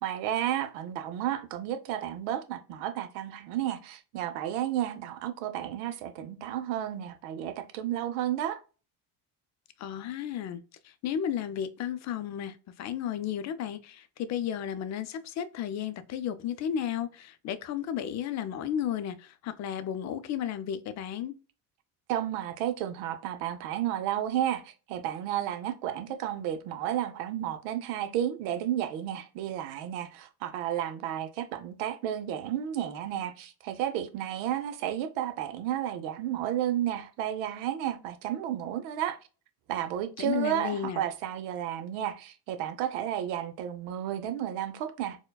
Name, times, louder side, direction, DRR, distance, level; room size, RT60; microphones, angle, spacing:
voice 1, 0.0-8.6 22.1-39.2 39.7-45.2, right 11 dB, 85° right, 0.7 m, -32 dB
voice 2, 9.8-21.3 40.2-41.0, left 9 dB, 45° left, 0.5 m, -33 dB
4.4 x 2.2 x 2.2 m
cardioid pair, 130°, 40 cm